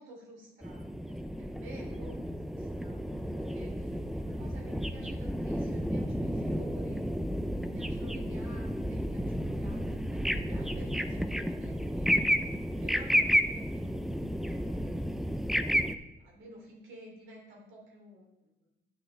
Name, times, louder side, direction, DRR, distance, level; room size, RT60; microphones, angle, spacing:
voice 1, 0.0-7.1 7.6-13.8 14.4-15.1 16.2-18.3, right 1 dB, 75° right, -2 dB, 3.1 m, -52 dB
sound 1, 0.6-16.0, equal, ahead, 0.5 m, -32 dB
11.0 x 6.3 x 3.4 m, 0.94 s
cardioid pair, 90°, 20 cm